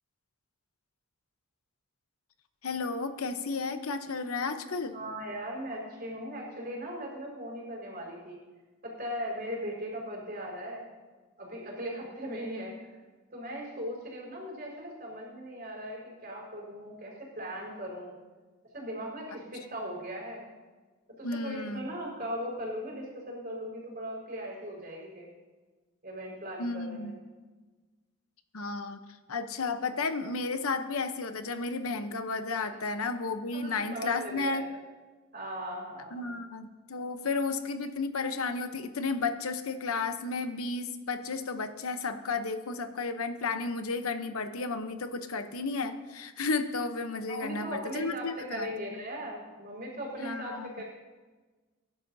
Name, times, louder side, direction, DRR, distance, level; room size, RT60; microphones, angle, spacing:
voice 1, 2.6-4.9 21.2-21.9 26.6-27.1 28.5-29.0 29.3-34.7 36.1-48.7 50.2-50.8, left 4 dB, 85° left, 8 dB, 0.9 m, -33 dB
voice 2, 4.9-8.4 8.8-10.9 11.4-12.7 13.3-18.1 18.7-20.4 21.2-25.3 26.0-27.1 32.7-32.8 33.5-34.6 35.3-36.3 47.3-50.8, equal, 45° right, -2 dB, 4.9 m, -38 dB
22.5 x 11.5 x 2.8 m, 1.3 s
head